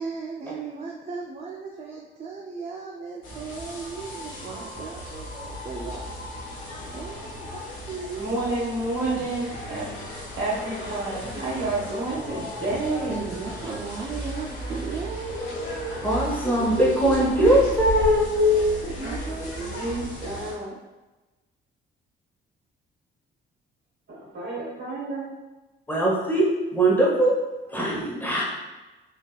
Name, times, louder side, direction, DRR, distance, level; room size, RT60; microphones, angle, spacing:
voice 1, 0.0-6.1 6.9-7.6 7.9-8.3 9.0-9.9 13.1-16.1 16.4-17.7 18.8-19.8, right 5 dB, 35° right, -1 dB, 0.4 m, -35 dB
sound 1, 3.2-20.5, equal, 85° left, 1.2 m, -35 dB
voice 2, 8.2-9.9 10.4-14.3 19.7-20.7 24.1-25.3, right 2 dB, 60° right, -5 dB, 1.4 m, -30 dB
voice 3, 16.0-18.7 25.9-27.4 27.7-28.4, equal, 10° left, -5 dB, 0.9 m, -21 dB
4.0 x 2.6 x 2.3 m, 1.1 s
cardioid pair, 90°, 20 cm